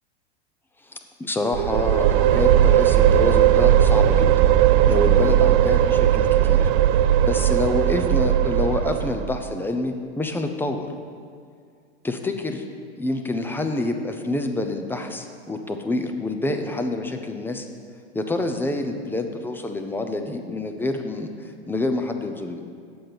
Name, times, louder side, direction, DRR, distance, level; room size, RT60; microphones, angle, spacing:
voice 1, 0.8-4.3 4.9-6.7 7.2-10.9 12.0-12.6 13.0-17.7 18.1-22.6, left 2 dB, 5° left, 5 dB, 0.6 m, -27 dB
sound 1, 1.5-9.4, right 11 dB, 50° right, 0.4 m, -18 dB
7.6 x 5.9 x 6.8 m, 2.1 s
hypercardioid pair, 105°, 33 cm